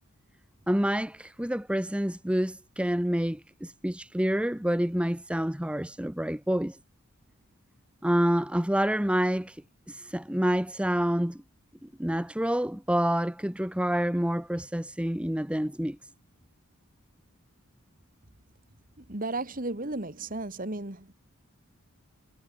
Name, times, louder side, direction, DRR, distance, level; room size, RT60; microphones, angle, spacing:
voice 1, 0.7-6.8 8.0-9.6 9.9-11.4 12.0-16.0, equal, 5° right, 1.0 m, -28 dB
voice 2, 19.1-21.1, right 2 dB, 40° right, 2.5 m, -34 dB
head